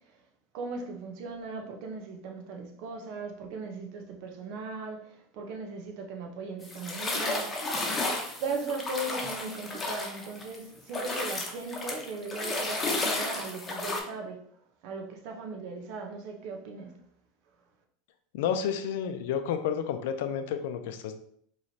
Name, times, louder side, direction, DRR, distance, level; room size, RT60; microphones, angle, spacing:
voice 1, 0.5-7.6 8.4-14.4 14.8-17.0, right 3 dB, 60° right, 3 dB, 0.8 m, -38 dB
sound 1, 6.6-10.6 10.9-14.0, left 2 dB, 20° left, 1.0 m, -32 dB
voice 2, 18.3-21.1, left 8 dB, 70° left, 8 dB, 0.5 m, -30 dB
4.8 x 3.1 x 2.8 m, 0.66 s
hypercardioid pair, 105°, 0 cm